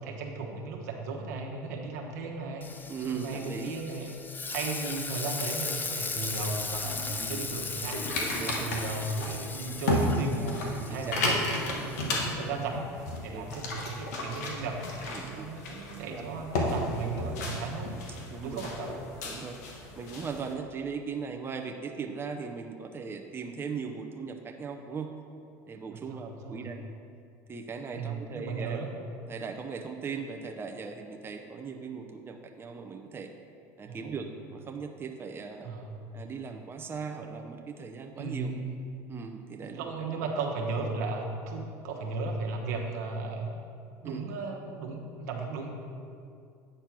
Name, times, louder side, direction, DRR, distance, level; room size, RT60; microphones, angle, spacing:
voice 1, 0.0-4.1 4.5-8.0 8.5-10.4 10.8-14.9 15.2-18.0 18.4-19.0 26.1-26.7 27.9-28.9 33.8-34.2 35.6-36.0 38.2-38.9 39.6-43.6 44.0-45.7, right 3 dB, 80° right, 0 dB, 1.2 m, -36 dB
Frying (food), 2.6-12.3, left 4 dB, 20° left, 0.6 m, -38 dB
voice 2, 2.9-3.7 6.8-7.5 8.2-8.7 10.4-11.4 12.1-12.2 13.3-13.5 15.1-15.5 16.0-16.2 18.3-18.7 19.2-19.6 20.0-25.1 25.7-26.8 27.5-28.8 29.3-33.3 33.8-35.7 36.1-38.5 39.1-40.2 44.0-44.2, right 5 dB, 25° right, 4 dB, 0.6 m, -39 dB
soda stream, 6.0-20.5, left 2 dB, 80° left, 1.3 m, -34 dB
9.0 x 4.4 x 6.0 m, 2.4 s
supercardioid pair, 90°, 9 cm